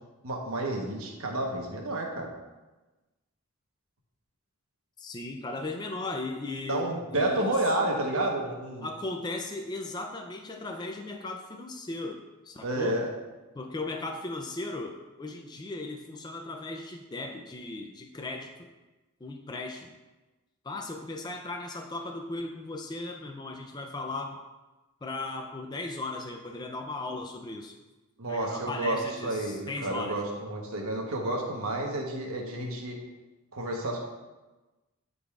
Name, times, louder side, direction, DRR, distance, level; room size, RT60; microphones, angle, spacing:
voice 1, 0.2-2.3 6.7-8.9 12.6-13.1 28.2-33.0 33.5-34.0, right 1 dB, 75° right, 0 dB, 1.1 m, -30 dB
voice 2, 5.0-7.5 8.8-13.0 13.5-18.5 19.2-19.9 20.6-24.4 25.0-27.7 28.3-30.2, left 2 dB, 20° left, 3 dB, 0.4 m, -37 dB
11.5 x 4.0 x 2.4 m, 1.1 s
head